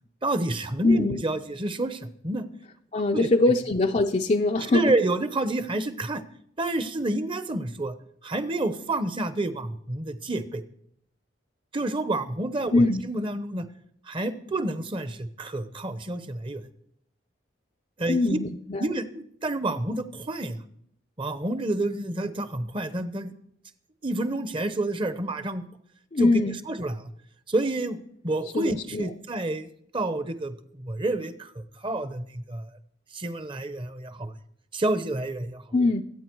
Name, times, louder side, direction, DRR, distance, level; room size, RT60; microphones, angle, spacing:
voice 1, 0.2-2.4 3.1-3.3 4.7-6.2 6.6-7.9 8.2-10.6 11.7-13.7 14.1-16.6 18.0-18.4 18.8-20.6 21.2-23.3 24.0-25.6 26.2-26.3 26.7-27.1 27.5-28.0 28.2-32.7 33.1-34.3 34.7-35.6, right 2 dB, 30° right, 12 dB, 0.9 m, -29 dB
voice 2, 0.8-1.2 2.9-4.9 12.7-13.0 18.1-18.9 26.1-26.6 28.5-29.1 35.7-36.0, left 2 dB, 40° left, 3 dB, 0.5 m, -22 dB
23.5 x 8.9 x 4.6 m, 0.70 s
head